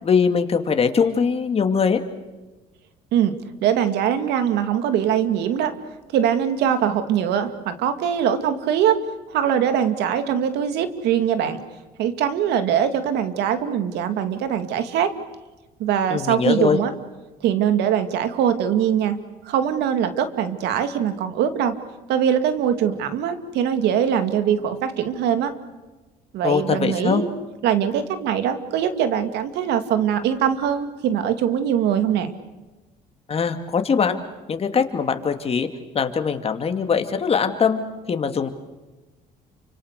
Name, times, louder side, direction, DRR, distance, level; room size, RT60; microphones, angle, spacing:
voice 1, 0.0-2.0 16.1-16.8 26.4-27.2 33.3-34.2 34.5-35.7 35.9-37.8 38.1-38.5, left 6 dB, 35° left, 6 dB, 2.5 m, -21 dB
voice 2, 3.6-5.7 6.1-9.0 9.3-11.6 12.0-15.1 15.8-16.9 17.4-19.2 19.4-21.7 22.1-25.5 26.3-27.3 27.6-32.3, right 9 dB, 80° right, 9 dB, 2.4 m, -22 dB
29.5 x 25.5 x 6.8 m, 1.2 s
cardioid pair, 110°, 17 cm